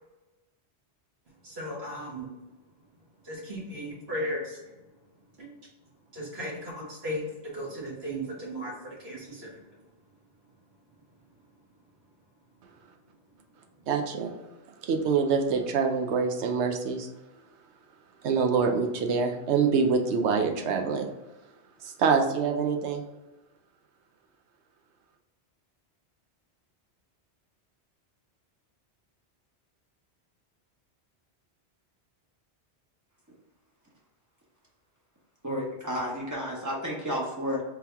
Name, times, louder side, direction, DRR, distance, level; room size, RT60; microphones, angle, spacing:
voice 1, 1.4-2.3 3.2-4.7 5.4-5.6 6.1-7.2 7.5-9.6, equal, 65° right, 1.7 m, -36 dB
voice 2, 13.9-14.3 14.7-17.1 18.2-21.1 21.4-21.5 21.8-23.0, right 5 dB, 80° right, 0.9 m, -26 dB
voice 3, 35.4-37.6, equal, 15° right, 0.9 m, -31 dB
3.7 x 2.9 x 3.4 m
omnidirectional pair, 1.1 m